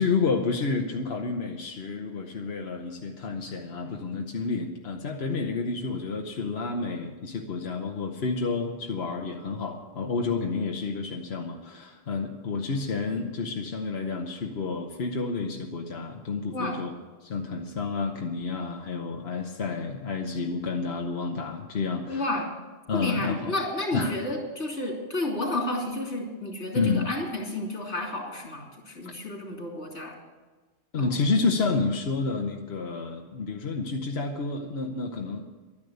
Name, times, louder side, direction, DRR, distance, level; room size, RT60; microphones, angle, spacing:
voice 1, 0.0-16.9 17.2-22.3 22.9-23.5 23.9-24.1 26.7-27.0 29.0-29.1 30.9-35.5, left 4 dB, 65° left, 2 dB, 1.3 m, -30 dB
voice 2, 22.1-22.5 22.9-30.2 31.0-31.2, left 1 dB, 90° left, 0 dB, 3.3 m, -31 dB
12.0 x 10.5 x 8.0 m, 1.3 s
omnidirectional pair, 1.1 m